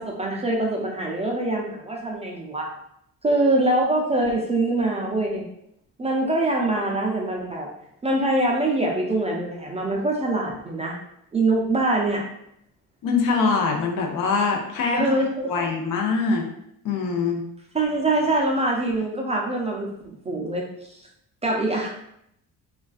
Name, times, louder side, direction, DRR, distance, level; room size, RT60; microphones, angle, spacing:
voice 1, 0.0-2.7 3.2-5.4 6.0-7.7 8.0-11.0 11.3-12.3 14.9-15.5 17.7-20.7 21.4-21.9, right 2 dB, 20° right, -1 dB, 0.3 m, -24 dB
voice 2, 13.0-15.1 15.5-16.5 16.8-17.4, left 4 dB, 60° left, 2 dB, 0.6 m, -23 dB
2.3 x 2.3 x 2.4 m, 0.74 s
cardioid pair, 100°, 36 cm